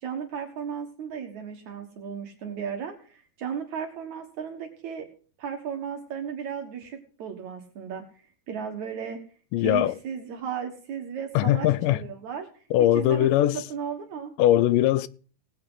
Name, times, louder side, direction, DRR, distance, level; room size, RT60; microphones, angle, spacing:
voice 1, 0.0-5.1 5.4-8.1 8.5-9.2 9.6-12.5 12.8-14.3, right 7 dB, 65° right, 2.7 m, -35 dB
voice 2, 9.5-9.9 11.4-12.0 12.7-13.6 14.4-15.1, left 13 dB, 85° left, 2.3 m, -21 dB
19.0 x 8.6 x 3.8 m
omnidirectional pair, 3.8 m